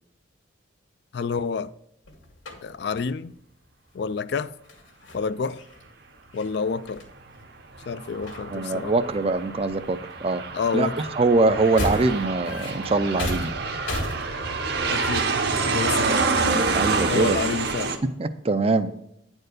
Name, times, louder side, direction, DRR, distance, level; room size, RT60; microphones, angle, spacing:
voice 1, 1.1-1.7 2.6-3.4 3.9-4.5 5.1-5.6 6.3-7.0 7.8-9.0 10.5-11.1 14.9-15.3 15.6-16.2 17.1-18.0, left 5 dB, 55° left, 0.3 m, -28 dB
sound 1, 2.1-3.2 4.6-7.8 8.1-9.1 9.4-10.2 10.5-17.5, left 1 dB, 75° left, 1.9 m, -37 dB
Aircraft, 7.8-18.0, right 4 dB, 55° right, 0.8 m, -27 dB
voice 2, 8.5-10.4 10.7-10.9 11.2-13.6 16.7-17.4 18.2-18.9, right 3 dB, 30° right, 0.4 m, -23 dB
9.4 x 4.5 x 6.5 m
head